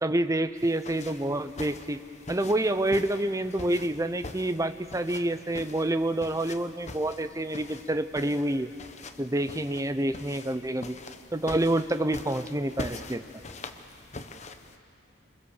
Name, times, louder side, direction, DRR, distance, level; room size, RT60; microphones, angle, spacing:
voice 1, 0.0-2.0 2.3-8.7 9.2-11.0 11.3-13.2, right 1 dB, 15° right, 10 dB, 0.7 m, -28 dB
sound 1, 0.6-14.8, left 2 dB, 35° left, 1.0 m, -44 dB
27.0 x 21.5 x 7.2 m, 2.5 s
head